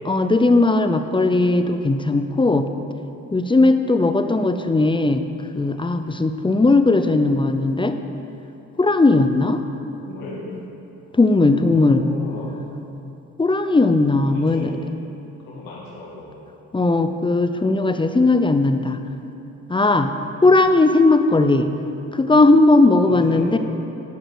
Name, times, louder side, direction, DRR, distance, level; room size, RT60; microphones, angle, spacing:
voice 1, 0.1-2.7 3.3-5.2 5.5-8.0 8.8-9.6 11.1-12.0 13.4-14.7 16.7-19.0 19.7-20.1 20.4-21.7 22.1-23.6, left 2 dB, 15° left, 8 dB, 0.5 m, -17 dB
voice 2, 9.9-10.4 11.0-12.5 14.2-14.7 15.5-16.3 20.2-20.8 23.0-23.6, left 4 dB, 90° left, -4 dB, 1.8 m, -36 dB
10.0 x 5.0 x 6.2 m, 2.8 s
supercardioid pair, 60°, 34 cm